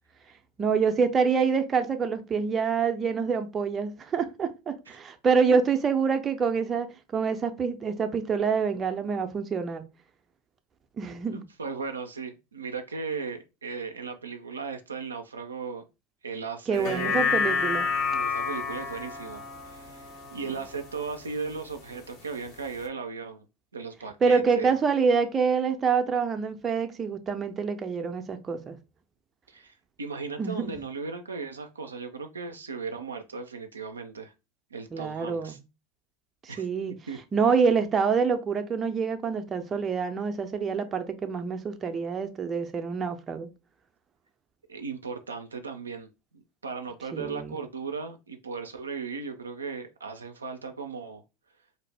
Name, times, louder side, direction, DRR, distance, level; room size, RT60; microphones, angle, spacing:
voice 1, 0.6-6.9 7.1-9.8 11.0-11.4 16.7-17.9 24.2-28.8 30.4-30.6 34.9-35.6 36.4-36.9 37.3-43.5 47.1-47.6, right 5 dB, 25° right, 0.5 m, -26 dB
voice 2, 11.3-15.8 16.2-17.3 18.1-23.5 23.7-24.7 29.5-34.3 34.7-35.6 36.5-36.7 37.1-37.2 37.5-37.6 44.7-51.2, right 5 dB, 85° right, 0.3 m, -37 dB
sound 1, 16.7-21.3 21.7-21.8, left 5 dB, 50° left, 0.8 m, -29 dB
2.5 x 2.0 x 3.3 m
hypercardioid pair, 85°, 0 cm